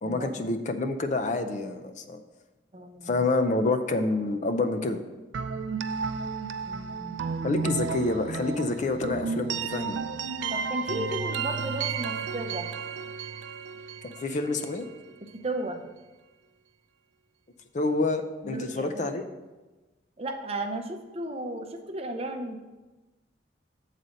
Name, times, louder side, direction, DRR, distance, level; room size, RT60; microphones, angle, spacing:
voice 1, 0.0-2.2 3.0-5.0 7.4-10.0 14.0-14.9 17.7-19.2, left 2 dB, 40° left, 8 dB, 0.5 m, -28 dB
voice 2, 2.7-3.1 6.7-7.2 10.5-12.7 15.3-15.8 18.4-19.1 20.2-22.6, right 1 dB, 35° right, 4 dB, 0.7 m, -34 dB
sound 1, 5.3-15.1, right 5 dB, 80° right, 0.4 m, -33 dB
7.5 x 4.1 x 6.4 m, 1.2 s
head